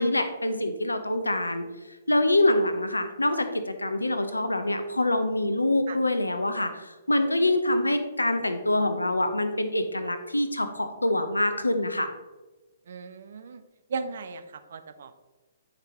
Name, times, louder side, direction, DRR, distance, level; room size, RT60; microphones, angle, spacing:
voice 1, 0.0-1.6 2.1-12.1, left 1 dB, 90° left, 9 dB, 0.7 m, -25 dB
voice 2, 12.9-13.6 13.9-15.2, right 4 dB, 60° right, 10 dB, 0.6 m, -37 dB
8.1 x 5.2 x 2.9 m, 1.2 s
figure-of-eight pair, 125°, 0 cm